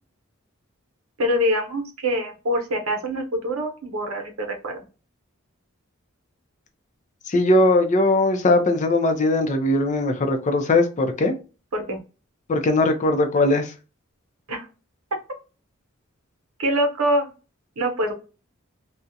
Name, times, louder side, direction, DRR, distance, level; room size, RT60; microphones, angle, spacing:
voice 1, 1.2-4.8 11.7-12.0 14.5-14.7 16.6-17.3 17.8-18.1, equal, 90° right, 0.8 m, -24 dB
voice 2, 7.3-11.3 12.5-13.7, left 2 dB, 35° left, 0.4 m, -20 dB
2.4 x 2.0 x 2.6 m
head